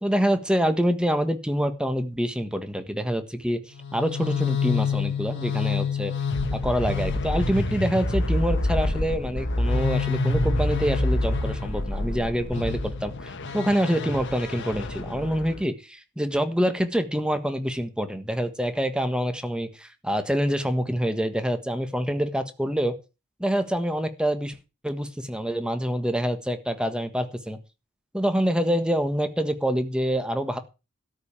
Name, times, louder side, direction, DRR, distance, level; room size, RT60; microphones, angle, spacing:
voice 1, 0.0-3.6 3.9-6.1 6.5-22.9 23.4-24.6 24.8-27.6 28.1-30.6, equal, 5° right, 8 dB, 1.5 m, -26 dB
sound 1, 3.8-15.6, left 3 dB, 60° left, 1.4 m, -27 dB
13.0 x 5.4 x 8.8 m, 0.30 s
head